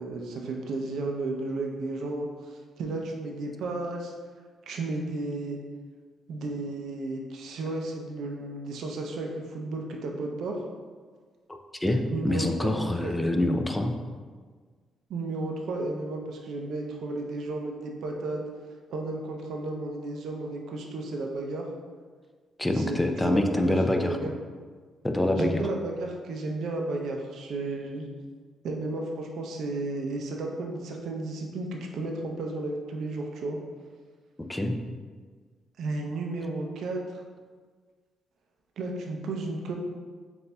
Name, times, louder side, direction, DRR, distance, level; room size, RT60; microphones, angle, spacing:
voice 1, 0.0-4.1 4.7-5.6 6.3-10.6 12.1-13.5 15.1-18.4 18.9-21.7 22.7-24.3 25.4-28.0 28.6-33.6 35.8-37.2 38.8-39.7, right 2 dB, 70° right, 1 dB, 0.6 m, -33 dB
voice 2, 11.5-14.0 22.6-24.2 25.0-25.7 34.5-34.8, left 1 dB, 15° left, 4 dB, 0.4 m, -26 dB
6.7 x 2.6 x 2.2 m, 1.5 s
cardioid pair, 90°, 0 cm